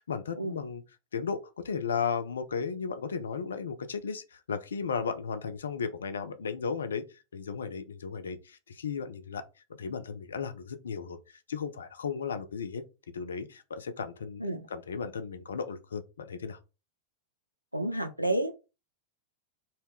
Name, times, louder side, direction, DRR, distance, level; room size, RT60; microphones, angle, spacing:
voice 1, 0.1-0.8 1.1-7.0 7.3-9.4 9.7-11.2 11.5-12.8 13.1-14.4 14.7-16.6, left 6 dB, 70° left, 0.3 m, -35 dB
voice 2, 17.7-18.5, right 1 dB, 90° right, 0.4 m, -30 dB
2.1 x 2.0 x 3.4 m
figure-of-eight pair, 90°, 0 cm